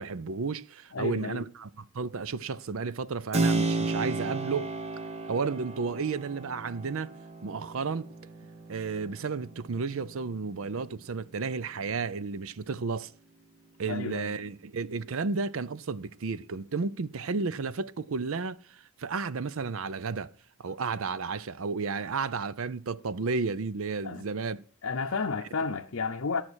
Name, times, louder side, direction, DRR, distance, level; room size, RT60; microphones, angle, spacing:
voice 1, 0.0-4.7 5.3-7.1 7.4-8.1 8.7-13.1 13.8-20.3 20.6-24.6, right 4 dB, 65° right, 0.6 m, -32 dB
voice 2, 0.9-1.5 13.9-14.3 24.0-24.2 24.8-26.4, left 4 dB, 60° left, 0.7 m, -32 dB
Keyboard (musical), 3.3-11.9, right 3 dB, 30° right, 1.1 m, -34 dB
12.5 x 6.0 x 6.2 m
head